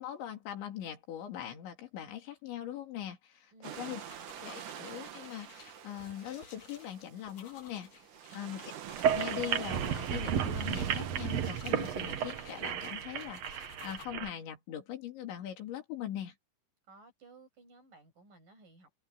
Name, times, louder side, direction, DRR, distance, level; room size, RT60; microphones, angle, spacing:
voice 1, 0.0-4.0 4.4-8.0 8.3-8.7 9.1-16.4, left 11 dB, 90° left, 5.4 m, -41 dB
voice 2, 3.5-4.0 8.3-8.7 16.9-19.0, right 3 dB, 50° right, 9.4 m, -58 dB
sound 1, 3.6-12.7, right 11 dB, 65° right, 2.2 m, -47 dB
sound 2, 3.7-14.1, left 6 dB, 45° left, 2.9 m, -55 dB
sound 3, 8.9-14.3, right 8 dB, 80° right, 1.4 m, -33 dB
open air
omnidirectional pair, 5.1 m